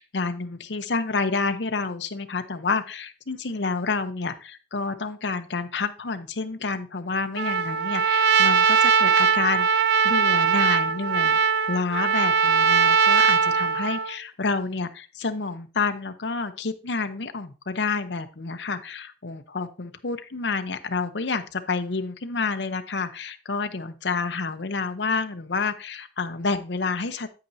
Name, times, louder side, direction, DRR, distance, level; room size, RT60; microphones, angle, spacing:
voice 1, 0.0-11.4 11.7-27.3, left 4 dB, 80° left, 10 dB, 0.8 m, -29 dB
Trumpet, 7.4-14.2, right 6 dB, 65° right, 0.5 m, -20 dB
9.2 x 8.6 x 2.7 m, 0.34 s
head